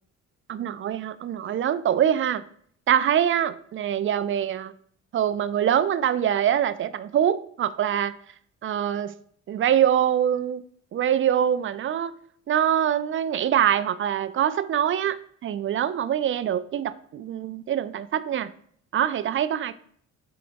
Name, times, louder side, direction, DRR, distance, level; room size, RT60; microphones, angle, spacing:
voice 1, 0.5-2.4 2.9-4.7 5.1-8.1 8.6-9.1 9.5-10.6 10.9-12.1 12.5-15.2 15.4-18.5 18.9-19.7, right 10 dB, 45° right, 0.4 m, -24 dB
4.8 x 3.9 x 5.1 m
cardioid pair, 90°, 30 cm